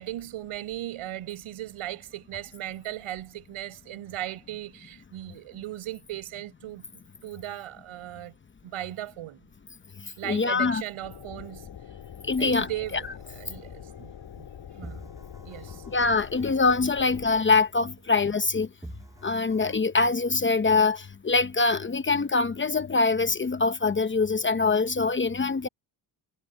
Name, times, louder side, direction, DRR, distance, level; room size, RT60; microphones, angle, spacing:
voice 1, 0.0-8.3 8.6-9.4 10.2-11.7 12.4-14.5 14.8-15.1 15.4-15.8, right 14 dB, 85° right, 5.2 m, -37 dB
voice 2, 10.2-10.8 12.2-12.7 15.9-18.7 19.2-25.7, left 4 dB, 25° left, 0.8 m, -24 dB
sound 1, 11.0-17.4, left 9 dB, 60° left, 4.6 m, -44 dB
sound 2, 12.6-14.5 14.8-18.5 18.8-19.8, right 1 dB, 5° right, 7.9 m, -49 dB
cardioid pair, 120°, 49 cm